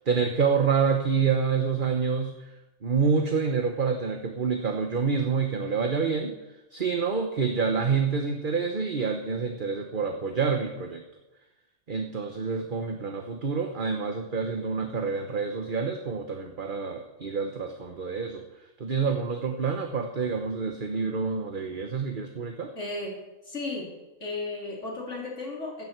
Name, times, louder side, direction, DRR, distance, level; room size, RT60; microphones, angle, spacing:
voice 1, 0.0-2.5 2.8-6.4 6.7-11.0 11.9-18.4 18.8-22.7, right 5 dB, 45° right, 5 dB, 1.2 m, -27 dB
voice 2, 22.8-23.1 23.4-23.9 24.2-25.8, left 3 dB, 75° left, -3 dB, 3.9 m, -34 dB
15.5 x 14.5 x 4.6 m, 1.0 s
omnidirectional pair, 1.3 m